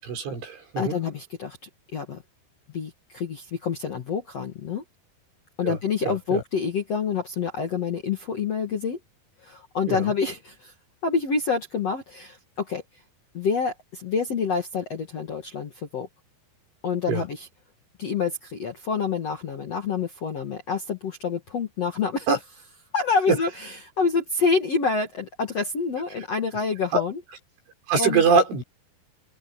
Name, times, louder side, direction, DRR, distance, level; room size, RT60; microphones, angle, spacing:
voice 1, 0.0-1.0 5.6-6.4 9.9-10.0 17.1-17.2 22.3-22.4 26.9-27.0 27.9-28.6, right 4 dB, 75° right, 8.5 m, -23 dB
voice 2, 0.8-1.6 1.9-2.2 2.7-4.8 5.6-9.0 9.4-10.7 11.0-13.0 13.3-16.1 16.8-17.5 18.0-22.3 22.9-27.2 28.0-28.2, left 5 dB, 55° left, 1.8 m, -27 dB
open air
omnidirectional pair, 5.6 m